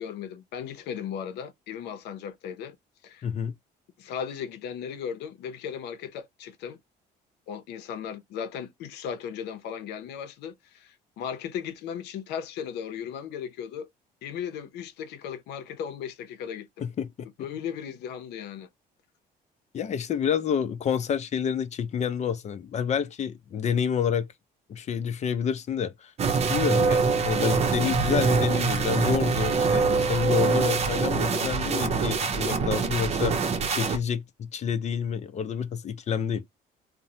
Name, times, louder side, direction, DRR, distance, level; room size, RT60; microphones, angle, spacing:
voice 1, 0.0-2.8 3.0-3.3 4.0-6.8 7.5-13.9 14.2-16.8 17.4-18.7, left 8 dB, 80° left, 0.7 m, -36 dB
voice 2, 3.2-3.5 16.8-17.1 19.7-24.3 24.7-26.1 26.5-33.4 33.7-36.4, left 7 dB, 45° left, 0.6 m, -28 dB
sound 1, 26.2-34.0, right 4 dB, 40° right, 0.7 m, -24 dB
2.9 x 2.2 x 2.7 m
cardioid pair, 110°, 17 cm